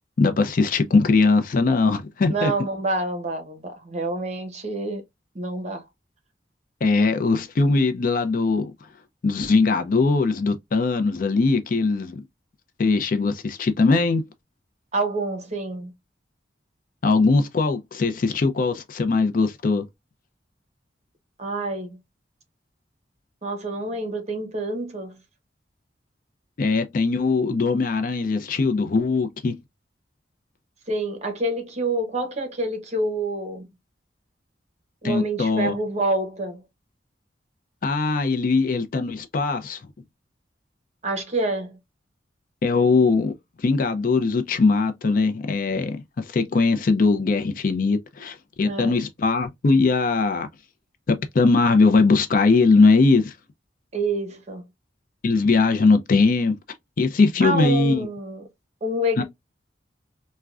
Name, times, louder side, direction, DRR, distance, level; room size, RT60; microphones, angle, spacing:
voice 1, 0.2-2.5 6.8-8.7 9.2-12.2 12.8-14.2 17.0-19.8 26.6-29.6 35.0-35.7 37.8-39.8 42.6-43.3 43.6-50.5 51.1-53.3 55.2-56.6 57.0-58.1 59.2-59.3, left 3 dB, 50° left, 0.4 m, -20 dB
voice 2, 2.3-5.0 5.3-5.8 14.9-15.9 21.4-22.0 23.4-25.2 30.9-33.7 35.0-36.6 41.0-41.8 48.7-49.0 53.9-54.6 57.4-58.5 58.8-59.2, right 2 dB, 40° right, 0.8 m, -27 dB
3.5 x 2.1 x 2.3 m
head